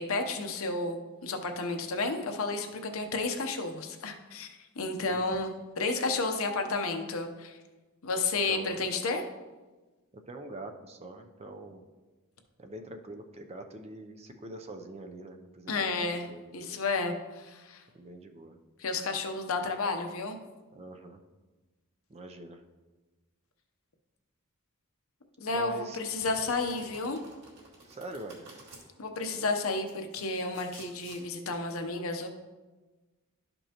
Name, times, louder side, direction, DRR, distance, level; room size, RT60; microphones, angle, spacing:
voice 1, 0.0-7.5 8.0-9.2 15.7-17.8 18.8-20.4 25.4-27.2 29.0-32.3, left 3 dB, 65° left, 5 dB, 0.8 m, -32 dB
voice 2, 8.5-8.8 10.1-11.8 12.6-16.8 17.9-18.6 20.7-21.2 22.1-22.6 25.5-26.0 27.8-28.5, right 2 dB, 30° right, 5 dB, 0.5 m, -44 dB
Domestic sounds home sounds, 26.2-28.8 29.6-31.2, right 2 dB, 50° right, 2.5 m, -51 dB
12.0 x 5.3 x 2.9 m, 1.2 s
head